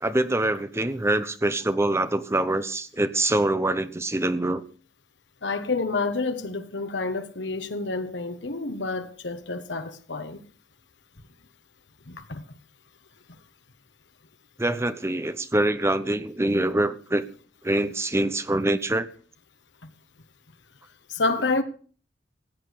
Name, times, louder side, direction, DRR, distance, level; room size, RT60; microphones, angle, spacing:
voice 1, 0.0-4.6 14.6-17.2 17.6-19.1, right 1 dB, 15° right, 0.9 m, -24 dB
voice 2, 5.4-10.4 12.1-12.4 21.1-21.6, left 3 dB, 75° left, 1.3 m, -28 dB
16.5 x 8.3 x 6.6 m
head